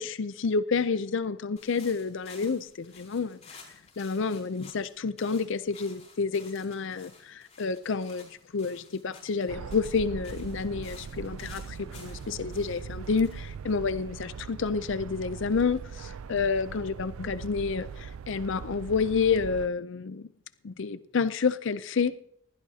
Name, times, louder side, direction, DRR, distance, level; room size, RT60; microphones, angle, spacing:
voice 1, 0.0-3.4 4.0-20.3 20.6-22.2, left 5 dB, 60° left, 0.5 m, -29 dB
sound 1, 1.6-14.3, left 4 dB, 35° left, 4.6 m, -54 dB
sound 2, 9.5-19.7, right 6 dB, 90° right, 0.4 m, -41 dB
20.0 x 16.0 x 2.8 m
head